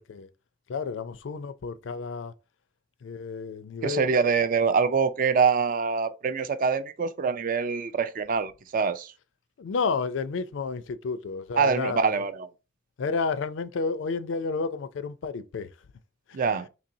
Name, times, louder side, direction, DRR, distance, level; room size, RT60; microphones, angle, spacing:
voice 1, 0.7-2.3 3.0-4.1 9.6-12.2 13.0-15.7, left 4 dB, 80° left, 0.4 m, -31 dB
voice 2, 3.8-9.1 11.6-12.5 16.3-16.7, right 5 dB, 45° right, 0.3 m, -25 dB
4.1 x 2.9 x 2.6 m
head